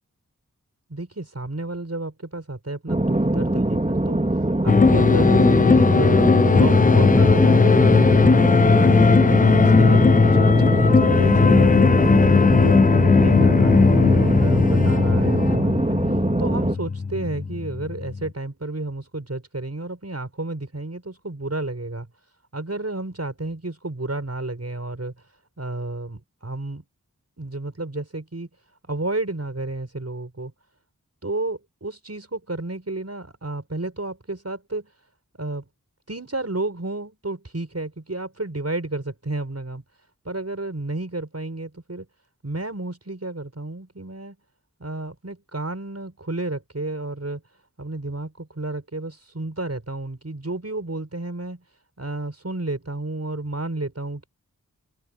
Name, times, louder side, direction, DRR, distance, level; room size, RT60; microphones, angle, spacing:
voice 1, 0.9-4.2 4.6-9.0 9.4-12.8 13.1-16.0 16.4-22.1 22.5-25.1 25.6-26.8 27.4-28.5 28.9-30.5 31.2-34.9 35.4-35.6 36.1-39.8 40.2-42.0 42.4-44.4 44.8-47.4 47.8-51.6 52.0-54.3, right 2 dB, 50° right, 6.5 m, -31 dB
sound 1, 2.9-16.7, right 1 dB, 20° right, 2.7 m, -23 dB
sound 2, 4.7-18.3, left 4 dB, 25° left, 0.4 m, -17 dB
wide cardioid pair, 45°, 33 cm